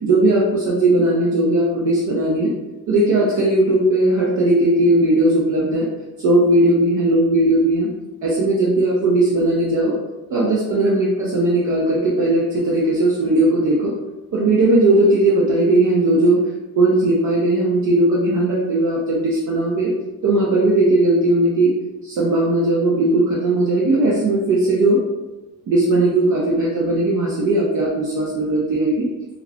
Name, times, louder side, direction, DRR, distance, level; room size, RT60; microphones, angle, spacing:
voice 1, 0.0-2.5 2.9-5.9 6.2-7.9 8.2-10.0 10.3-13.9 14.3-16.4 16.8-19.9 20.2-21.7 22.0-25.0 25.7-29.1, right 2 dB, 50° right, -5 dB, 0.6 m, -17 dB
2.4 x 2.4 x 3.3 m, 1.1 s
cardioid pair, 95°, 37 cm